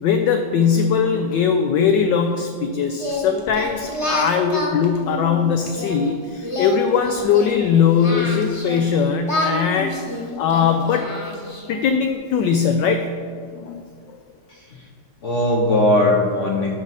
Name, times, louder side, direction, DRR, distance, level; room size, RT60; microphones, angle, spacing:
voice 1, 0.0-11.1 11.7-13.1 13.5-14.2, left 7 dB, 75° left, 5 dB, 1.1 m, -20 dB
Singing, 2.9-6.0 6.4-8.9 9.2-11.8, left 1 dB, 20° left, 1.0 m, -28 dB
voice 2, 14.5-14.9 15.2-16.8, left 1 dB, 55° left, -1 dB, 0.9 m, -19 dB
11.5 x 6.1 x 4.1 m, 2.1 s
omnidirectional pair, 2.3 m